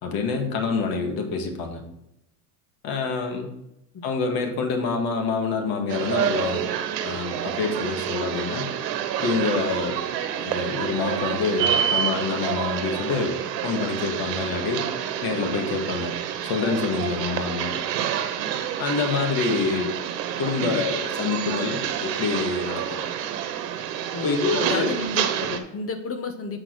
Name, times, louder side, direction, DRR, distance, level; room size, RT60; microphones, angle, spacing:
voice 1, 0.0-1.8 2.8-3.5 4.0-6.7 7.0-8.7 9.2-10.0 10.4-13.4 13.6-14.9 15.2-16.1 16.4-17.8 18.8-19.8 20.4-23.0 24.2-24.9, left 4 dB, 45° left, 4 dB, 1.9 m, -26 dB
sound 1, 5.9-25.6, right 9 dB, 80° right, 1.3 m, -28 dB
voice 2, 24.1-26.6, left 4 dB, 30° left, 8 dB, 0.9 m, -31 dB
7.7 x 6.1 x 4.6 m, 0.84 s
supercardioid pair, 115°, 49 cm